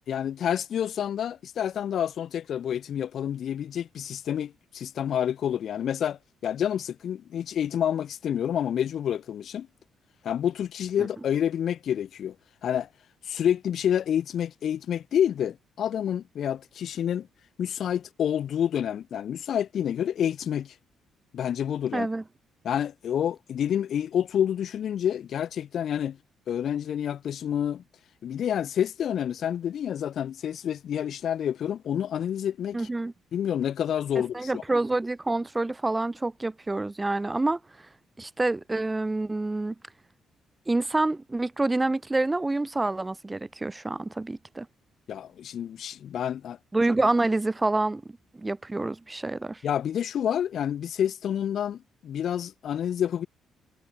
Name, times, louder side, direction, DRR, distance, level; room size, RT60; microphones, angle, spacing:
voice 1, 0.1-9.7 10.2-12.4 12.6-12.9 13.3-17.3 17.6-20.7 21.3-22.1 22.6-26.2 26.5-27.8 28.2-32.9 33.3-34.6 45.1-46.6 49.6-53.3, left 9 dB, 65° left, 1.6 m, -28 dB
voice 2, 21.9-22.2 32.7-33.1 34.3-37.6 38.2-39.7 40.7-44.7 46.7-48.0 48.4-49.6, right 2 dB, 15° right, 0.5 m, -27 dB
cardioid pair, 90°, 0 cm